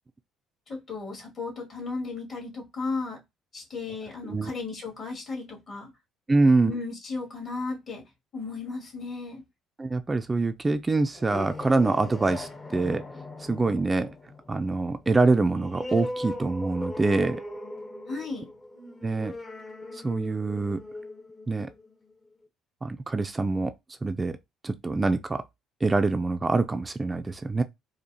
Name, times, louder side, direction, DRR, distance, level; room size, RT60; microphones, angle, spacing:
voice 1, 0.7-3.2 3.5-5.9 6.7-8.0 8.3-9.4 18.1-18.5, left 3 dB, 50° left, 2.3 m, -35 dB
voice 2, 6.3-6.7 9.8-13.0 13.4-14.1 14.5-17.4 19.0-19.3 19.9-20.8 21.5-21.7 22.8-23.7 24.0-24.4 24.6-25.4 25.8-27.6, right 3 dB, 25° right, 0.4 m, -25 dB
sound 1, 11.0-22.2, left 2 dB, 30° left, 0.9 m, -39 dB
4.4 x 2.4 x 2.8 m
hypercardioid pair, 60°, 0 cm